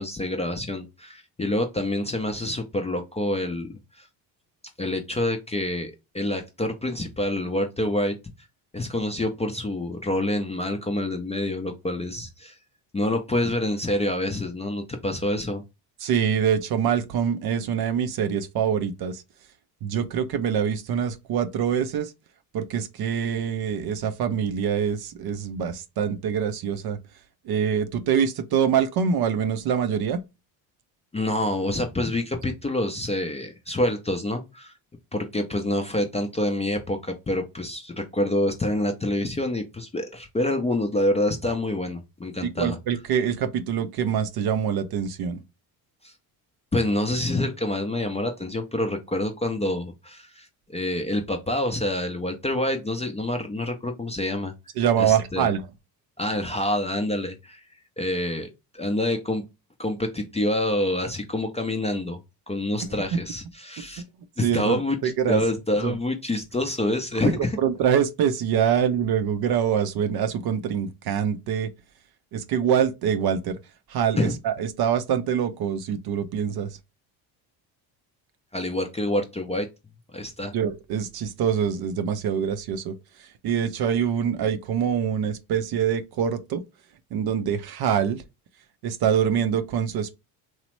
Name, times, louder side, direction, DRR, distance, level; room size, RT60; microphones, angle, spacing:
voice 1, 0.0-4.0 4.8-8.1 8.7-12.6 12.9-15.6 31.1-34.7 35.1-42.7 46.0-46.1 46.7-54.5 55.0-55.5 56.2-57.6 58.0-59.4 59.8-62.2 62.5-64.0 64.4-65.0 65.3-67.6 74.2-74.3 78.5-79.7 80.1-80.5, left 1 dB, 15° left, 0.4 m, -27 dB
voice 2, 16.0-19.2 19.8-22.1 22.5-27.0 27.5-30.2 42.6-45.4 54.8-55.6 62.8-63.2 64.4-65.4 65.8-66.0 67.2-71.7 72.3-73.6 73.9-76.7 80.5-82.9 83.2-86.6 87.1-88.2 88.8-90.2, right 8 dB, 50° right, 0.5 m, -25 dB
3.0 x 2.0 x 3.0 m
supercardioid pair, 70°, 50 cm